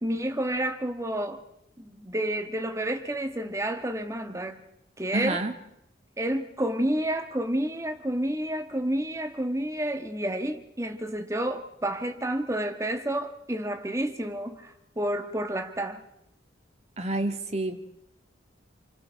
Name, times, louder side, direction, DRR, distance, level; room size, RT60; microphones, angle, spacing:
voice 1, 0.0-1.4 1.8-4.6 5.0-5.4 6.2-16.0, right 1 dB, 15° right, 1.3 m, -30 dB
voice 2, 5.1-5.6 17.0-17.8, right 2 dB, 35° right, 1.9 m, -28 dB
29.5 x 24.5 x 4.5 m
head